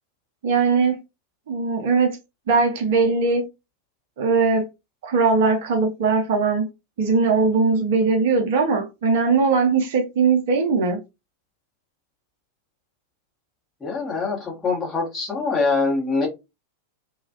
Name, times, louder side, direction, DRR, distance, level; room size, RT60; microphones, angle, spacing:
voice 1, 0.4-1.0 1.5-2.2 2.5-3.4 4.2-4.6 5.0-6.7 7.0-11.0, right 4 dB, 55° right, 0.7 m, -20 dB
voice 2, 13.8-16.3, left 4 dB, 15° left, 1.5 m, -24 dB
2.9 x 2.3 x 2.9 m
figure-of-eight pair, 90°, 0 cm